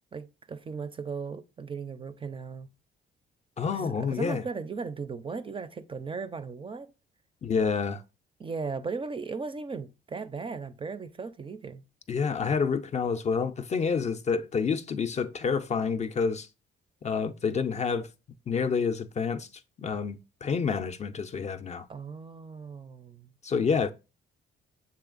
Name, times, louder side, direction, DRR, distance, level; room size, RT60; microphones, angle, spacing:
voice 1, 0.1-2.7 3.7-6.9 8.4-11.8 21.9-23.3, right 4 dB, 25° right, 0.4 m, -37 dB
voice 2, 3.6-4.4 7.4-8.0 12.1-16.5 17.0-18.1 18.5-19.5 19.8-21.8 23.4-23.9, left 5 dB, 35° left, 0.4 m, -28 dB
6.9 x 3.2 x 2.4 m
cardioid pair, 90°, 20 cm